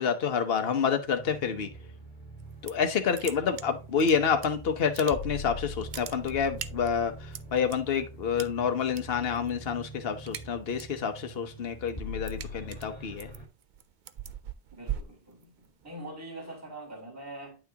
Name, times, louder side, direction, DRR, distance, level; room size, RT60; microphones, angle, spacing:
voice 1, 0.0-1.7 2.6-7.1 7.5-13.3, left 6 dB, 65° left, 1.2 m, -28 dB
sound 1, 1.1-13.5, equal, 25° left, 1.8 m, -43 dB
sound 2, 2.4-2.9 3.1-4.5 4.8-5.5 5.7-7.8 8.4-9.0 9.3-9.6 9.9-11.0 11.4-15.9, right 9 dB, 55° right, 0.6 m, -40 dB
voice 2, 14.7-15.5 15.8-17.6, right 1 dB, 15° right, 3.0 m, -43 dB
9.3 x 5.9 x 2.9 m
omnidirectional pair, 1.1 m